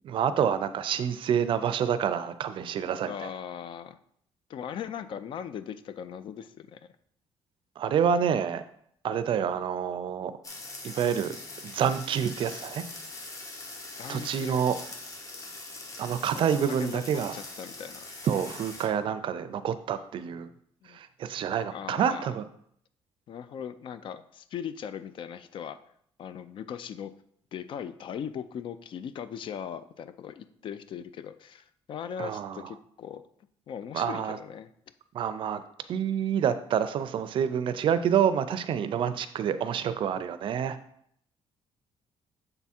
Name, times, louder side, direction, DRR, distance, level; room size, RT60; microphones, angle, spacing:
voice 1, 0.0-3.3 7.8-8.6 9.0-10.3 10.8-11.4 11.6-12.8 14.1-14.7 16.0-17.4 18.2-20.5 20.9-22.4 32.2-32.7 33.9-34.4 35.1-35.6 35.9-40.8, right 8 dB, 55° right, 11 dB, 0.4 m, -28 dB
voice 2, 3.0-4.0 4.5-6.8 13.9-14.6 16.3-17.0 17.3-18.1 20.8-21.0 21.7-22.3 23.3-25.8 26.2-27.1 27.5-33.2 33.7-34.7, left 8 dB, 50° left, 12 dB, 0.4 m, -39 dB
sound 1, 10.4-18.9, left 2 dB, 30° left, 1.0 m, -42 dB
6.7 x 3.5 x 4.3 m, 0.67 s
cardioid pair, 155°, 11 cm